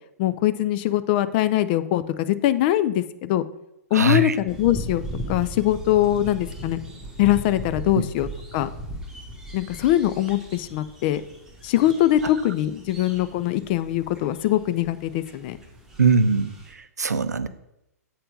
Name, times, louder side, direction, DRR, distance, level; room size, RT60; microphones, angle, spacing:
voice 1, 0.2-3.4 3.9-5.0 5.3-6.8 7.2-8.3 8.5-8.7 9.5-11.2 11.6-15.6, left 13 dB, 35° left, 13 dB, 0.4 m, -22 dB
voice 2, 3.9-4.4 7.9-8.0 16.0-17.5, right 4 dB, 75° right, 13 dB, 0.5 m, -21 dB
sound 1, 4.5-16.7, equal, 5° right, 1.3 m, -38 dB
7.9 x 4.4 x 5.2 m, 0.84 s
figure-of-eight pair, 110°, 9 cm